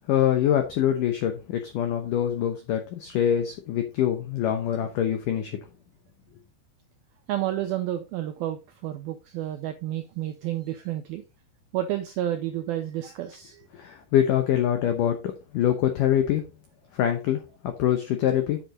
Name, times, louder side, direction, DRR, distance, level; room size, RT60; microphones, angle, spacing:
voice 1, 0.1-5.6 13.7-16.4 16.9-18.6, left 10 dB, 85° left, 1.8 m, -24 dB
voice 2, 7.3-11.2 11.7-13.7, right 12 dB, 85° right, 2.1 m, -30 dB
8.0 x 7.5 x 3.8 m
omnidirectional pair, 5.2 m